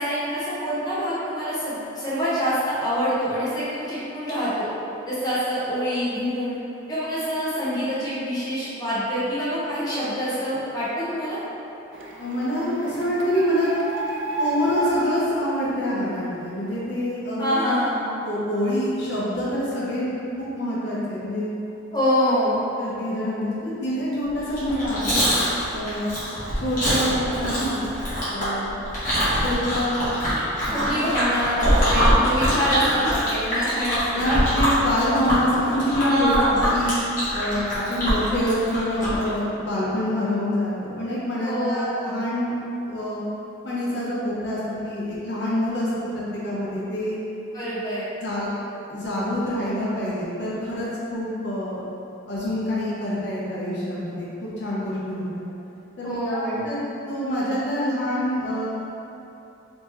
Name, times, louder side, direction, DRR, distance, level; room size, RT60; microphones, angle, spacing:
voice 1, 0.0-4.7 5.1-6.6 6.9-11.4 17.4-18.1 21.9-22.6 30.7-34.6 36.1-36.6 41.4-42.0 47.5-48.1 56.0-56.7, equal, 20° left, -10 dB, 0.8 m, -25 dB
Printer, 11.9-16.5, right 2 dB, 70° right, 0.4 m, -32 dB
voice 2, 12.2-13.7 14.4-17.6 18.2-20.1 20.4-21.5 22.8-25.2 25.7-26.1 26.6-27.8 28.3-28.8 29.4-30.1 30.6-30.8 31.8-32.5 33.0-33.1 34.0-36.3 36.7-42.5 42.9-43.2 43.6-47.2 48.2-48.5 48.9-51.9 52.3-55.5 56.0-56.8 57.1-58.7, left 1 dB, 60° left, -8 dB, 0.8 m, -26 dB
Chewing mastication, 24.5-39.3, equal, 40° left, 1.2 m, -24 dB
4.3 x 3.0 x 3.0 m, 3.0 s
head